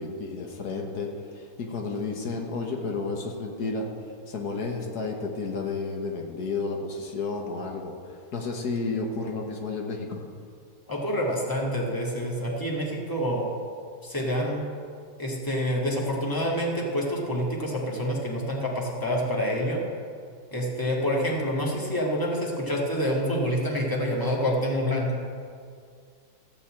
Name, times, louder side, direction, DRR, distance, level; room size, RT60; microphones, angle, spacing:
voice 1, 0.0-3.9 4.3-10.2, left 3 dB, 85° left, 1 dB, 1.8 m, -32 dB
voice 2, 10.9-13.5 14.0-14.6 15.2-19.8 20.5-25.2, equal, 15° left, -2 dB, 1.8 m, -27 dB
14.0 x 5.5 x 8.6 m, 2.2 s
omnidirectional pair, 1.6 m